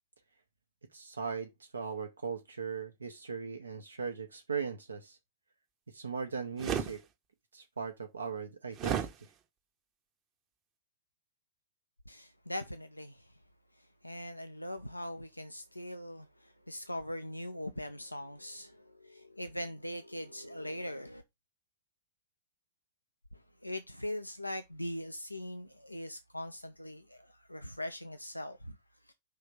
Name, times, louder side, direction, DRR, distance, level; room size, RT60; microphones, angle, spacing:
voice 1, 0.9-5.2 5.9-7.0 7.5-9.1, right 5 dB, 75° right, 0.7 m, -39 dB
sound 1, 6.6-6.9 8.8-9.1, right 8 dB, 35° right, 0.9 m, -32 dB
voice 2, 12.1-13.2 14.0-21.2 23.6-28.8 29.1-29.2, left 1 dB, 85° left, 0.4 m, -41 dB
5.6 x 3.2 x 5.3 m
figure-of-eight pair, 90°, 0 cm